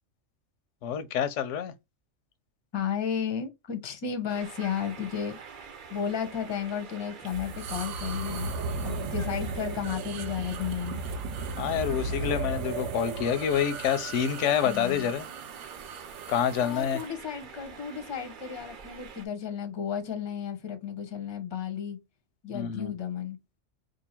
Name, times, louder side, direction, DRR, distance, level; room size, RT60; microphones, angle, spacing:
voice 1, 0.8-1.7 11.6-15.3 16.3-17.0 22.5-22.9, left 8 dB, 90° left, 0.9 m, -27 dB
voice 2, 2.7-5.4 5.9-8.6 8.8-11.0 14.6-15.1 16.6-22.0 22.4-23.4, left 8 dB, 30° left, 0.6 m, -33 dB
sound 1, 4.3-19.3, right 6 dB, 50° right, 0.8 m, -47 dB
sound 2, 7.3-17.1, right 3 dB, 85° right, 0.9 m, -36 dB
2.7 x 2.6 x 4.2 m
omnidirectional pair, 1.2 m